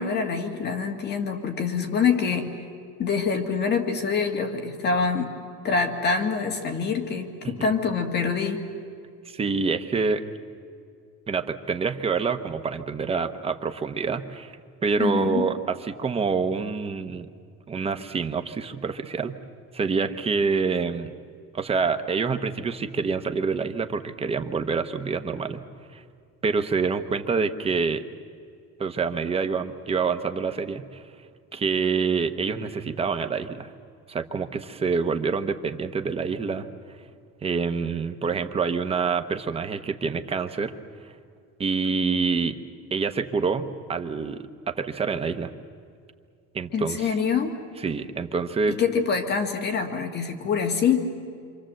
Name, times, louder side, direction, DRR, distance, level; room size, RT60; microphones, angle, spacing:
voice 1, 0.0-2.5 3.0-5.4 5.6-8.7 15.0-15.5 46.7-47.6 48.7-51.1, left 5 dB, 35° left, 5 dB, 1.9 m, -25 dB
voice 2, 9.3-10.2 11.3-14.5 14.8-17.3 17.7-19.4 19.7-21.1 21.5-25.6 25.9-26.0 26.4-28.0 28.8-31.0 31.5-33.7 34.1-36.7 37.4-40.7 41.6-42.6 42.9-45.5 46.5-47.1 47.8-48.8, right 5 dB, 20° right, 8 dB, 0.9 m, -26 dB
27.0 x 26.0 x 7.7 m, 2.3 s
cardioid pair, 160°, 30 cm